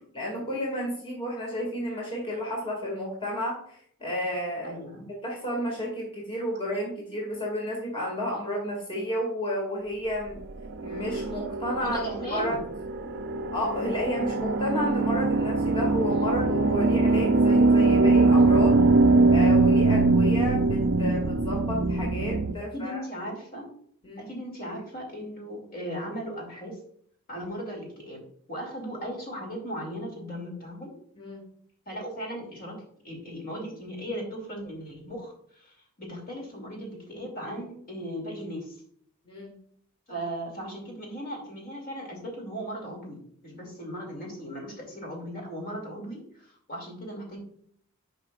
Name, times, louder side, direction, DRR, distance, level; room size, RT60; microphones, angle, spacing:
voice 1, 0.1-4.8 5.2-10.4 10.8-12.0 12.3-12.6 13.5-18.8 19.3-23.0 24.0-24.3 31.2-31.4 39.2-39.5, equal, 25° left, -2 dB, 2.2 m, -31 dB
voice 2, 4.6-5.1 11.8-12.6 22.7-23.7 24.2-26.8 27.3-28.2 28.5-30.9 31.9-32.8 33.0-38.8 40.1-47.4, equal, 45° left, 0 dB, 2.5 m, -37 dB
sound 1, 10.7-22.5, right 3 dB, 50° right, 0.4 m, -22 dB
11.0 x 5.3 x 2.4 m, 0.62 s
head